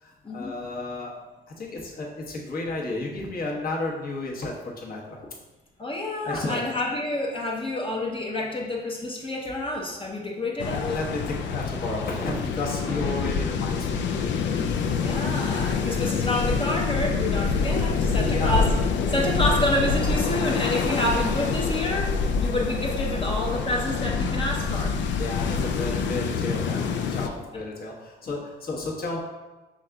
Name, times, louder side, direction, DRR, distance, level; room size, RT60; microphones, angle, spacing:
voice 1, 0.0-1.1 1.5-5.2 6.2-6.6 10.7-14.6 18.2-18.6 25.2-26.8 27.1-29.2, left 2 dB, 50° left, -3 dB, 1.1 m, -32 dB
voice 2, 5.8-10.9 12.9-13.0 14.5-14.6 15.0-18.7 19.1-25.0, left 1 dB, 25° left, -2 dB, 0.7 m, -28 dB
sound 1, 10.6-27.3, left 5 dB, 65° left, 0.4 m, -26 dB
5.9 x 3.7 x 2.3 m, 1.2 s
cardioid pair, 90°, 20 cm